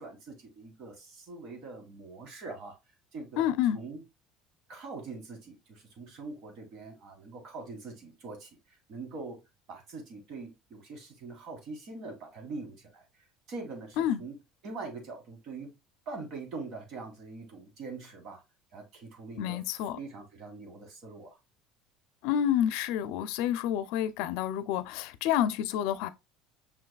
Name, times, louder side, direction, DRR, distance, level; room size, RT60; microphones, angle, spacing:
voice 1, 0.0-2.8 3.1-4.0 4.7-8.5 8.9-9.4 9.7-13.0 13.5-14.3 14.6-15.7 16.1-18.4 18.7-19.6 19.9-21.4, right 3 dB, 55° right, 1.8 m, -43 dB
voice 2, 3.4-3.8 14.0-14.2 19.4-20.0 22.2-26.1, left 10 dB, 75° left, 0.4 m, -29 dB
5.7 x 3.2 x 2.3 m
cardioid pair, 120°, 0 cm